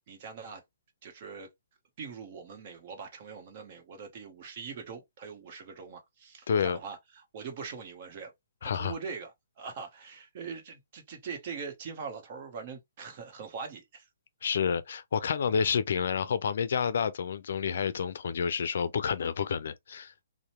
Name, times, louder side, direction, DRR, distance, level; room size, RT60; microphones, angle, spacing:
voice 1, 0.1-0.6 1.0-1.5 2.0-7.0 7.3-8.3 8.7-9.3 9.6-14.1, right 5 dB, 45° right, 0.9 m, -42 dB
voice 2, 6.5-6.8 8.6-8.9 14.4-20.1, left 6 dB, 65° left, 0.4 m, -29 dB
2.7 x 2.1 x 2.9 m
hypercardioid pair, 150°, 0 cm